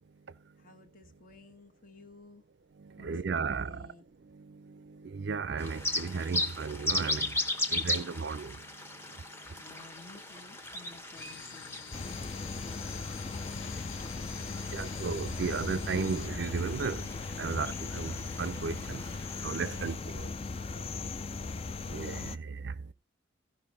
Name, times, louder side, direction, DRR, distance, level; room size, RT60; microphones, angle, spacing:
voice 1, 0.6-2.4 3.0-4.1 5.7-5.9 9.4-13.1 19.6-20.2 20.7-21.9, left 3 dB, 45° left, 1.3 m, -55 dB
voice 2, 2.8-3.9 4.2-9.2 13.7-13.9 14.3-14.4 14.7-17.1 17.4-20.3 21.9-22.9, right 5 dB, 60° right, 0.5 m, -35 dB
sound 1, 5.6-20.0, left 1 dB, 15° left, 0.9 m, -38 dB
sound 2, 11.1-16.3, left 7 dB, 85° left, 0.9 m, -48 dB
sound 3, 11.9-22.4, left 4 dB, 30° left, 0.4 m, -38 dB
15.0 x 5.5 x 4.0 m
head